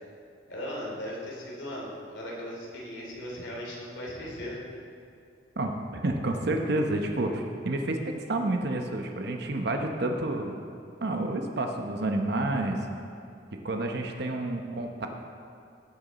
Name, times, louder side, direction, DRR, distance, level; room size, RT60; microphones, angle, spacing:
voice 1, 0.5-4.6, left 1 dB, 85° left, -4 dB, 2.9 m, -37 dB
voice 2, 5.6-10.5 11.0-12.8 13.6-15.1, right 2 dB, 65° right, 3 dB, 0.9 m, -29 dB
18.0 x 6.7 x 4.1 m, 2.5 s
head